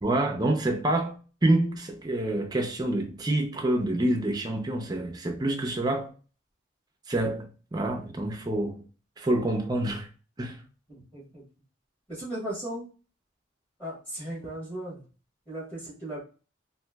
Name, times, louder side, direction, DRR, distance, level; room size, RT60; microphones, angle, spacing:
voice 1, 0.0-6.1 7.1-8.8 9.2-10.1 10.4-10.6, right 1 dB, 20° right, 0.4 m, -27 dB
voice 2, 10.9-11.4 12.1-12.9 13.8-15.0 15.5-16.2, right 1 dB, 10° left, 1.2 m, -36 dB
2.9 x 2.5 x 2.2 m
head